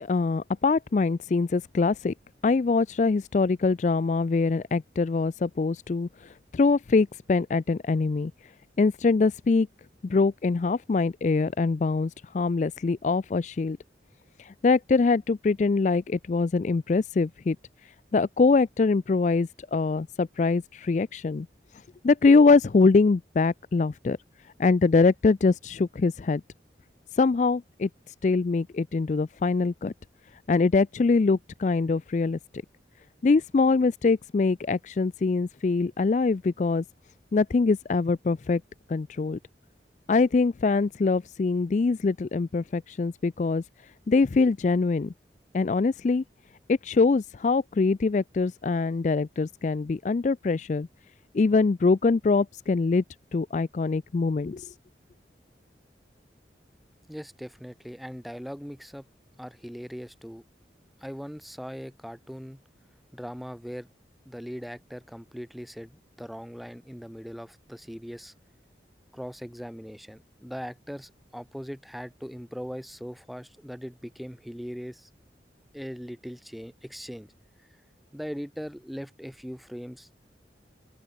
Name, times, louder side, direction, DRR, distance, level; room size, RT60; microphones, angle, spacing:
voice 1, 0.0-2.1 2.4-8.3 8.8-9.7 10.0-13.8 14.4-17.6 18.1-21.5 22.0-24.2 24.6-26.4 27.1-27.9 28.2-29.9 30.5-32.4 33.2-36.8 37.3-38.6 38.9-39.4 40.1-43.6 44.1-45.1 45.5-46.2 46.7-50.9 51.3-53.0 53.3-54.7, left 4 dB, 40° left, 0.3 m, -23 dB
voice 2, 57.1-59.1 59.4-60.4 61.0-62.6 63.1-63.9 64.3-68.3 69.1-75.1 75.7-77.3 78.1-80.1, equal, ahead, 1.9 m, -40 dB
open air
head